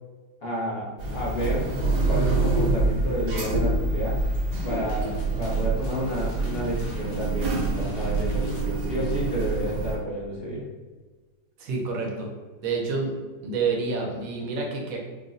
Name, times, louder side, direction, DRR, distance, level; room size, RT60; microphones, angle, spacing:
voice 1, 0.4-1.7 2.1-4.2 4.6-10.7, equal, 45° left, -6 dB, 0.9 m, -30 dB
sound 1, 1.0-9.9, right 2 dB, 85° right, 1.5 m, -26 dB
sound 2, 4.4-9.6, left 2 dB, 70° left, 1.3 m, -51 dB
voice 2, 11.6-12.3 12.6-13.1 13.4-15.0, right 4 dB, 65° right, 0 dB, 1.0 m, -28 dB
4.8 x 2.2 x 2.6 m, 1.3 s
omnidirectional pair, 1.7 m